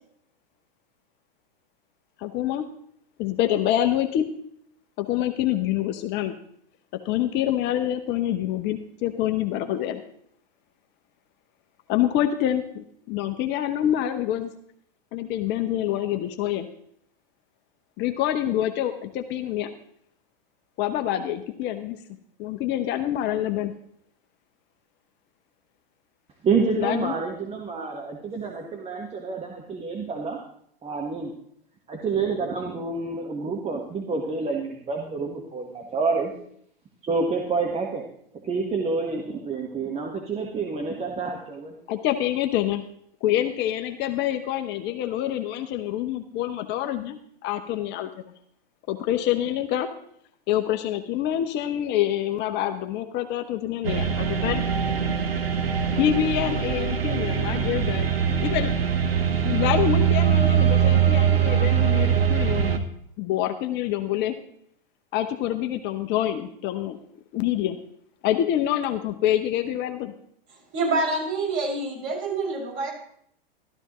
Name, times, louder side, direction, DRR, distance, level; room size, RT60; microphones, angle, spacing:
voice 1, 2.2-2.7 3.2-4.3 5.0-6.4 7.0-10.0 11.9-14.5 15.1-16.7 18.0-19.7 20.8-22.0 22.4-23.7 26.8-27.1 41.9-42.8 43.2-48.1 48.9-49.9 50.5-54.6 55.9-58.1 58.4-58.7 59.4-62.8 63.2-64.4 65.1-67.0 67.3-67.8 68.2-70.1, left 12 dB, 35° left, 8 dB, 0.9 m, -26 dB
voice 2, 26.4-30.4 30.8-31.3 31.9-36.3 37.0-38.0 38.4-41.8, right 4 dB, 20° right, 1 dB, 1.4 m, -28 dB
sound 1, 53.8-62.8, right 8 dB, 90° right, 1.1 m, -22 dB
voice 3, 70.7-72.9, right 3 dB, 45° right, -2 dB, 6.1 m, -26 dB
13.0 x 12.5 x 3.1 m, 0.67 s
hypercardioid pair, 105°, 29 cm